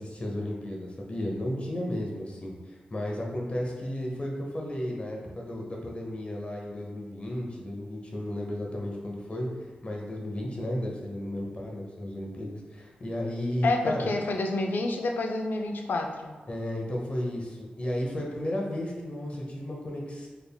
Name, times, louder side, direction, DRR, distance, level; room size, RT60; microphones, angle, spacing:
voice 1, 0.0-9.5 9.8-14.1 16.5-20.3, left 1 dB, 40° left, -1 dB, 0.7 m, -33 dB
voice 2, 13.6-16.4, left 2 dB, 75° left, 3 dB, 0.4 m, -28 dB
3.6 x 3.4 x 2.2 m, 1.5 s
wide cardioid pair, 90°, 3 cm